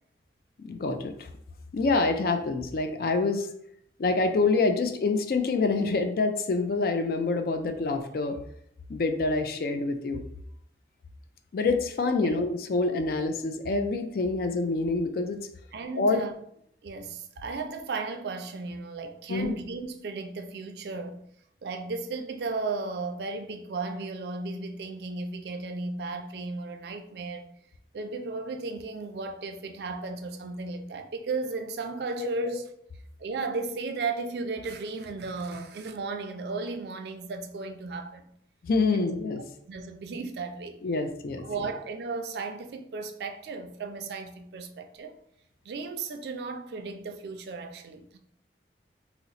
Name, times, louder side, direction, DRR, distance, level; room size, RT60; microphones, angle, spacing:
voice 1, 0.6-1.3 1.7-3.5 4.0-8.4 8.9-10.2 11.5-15.4 16.0-16.2 19.3-19.5 32.2-32.6 38.6-39.4 40.8-41.4, left 3 dB, 55° left, 0.4 m, -26 dB
voice 2, 15.7-16.3 16.8-21.2 21.6-27.5 27.9-32.7 33.2-38.3 39.7-40.8 41.4-45.1 45.6-48.2, right 3 dB, 65° right, 0.4 m, -35 dB
2.8 x 2.0 x 3.9 m
head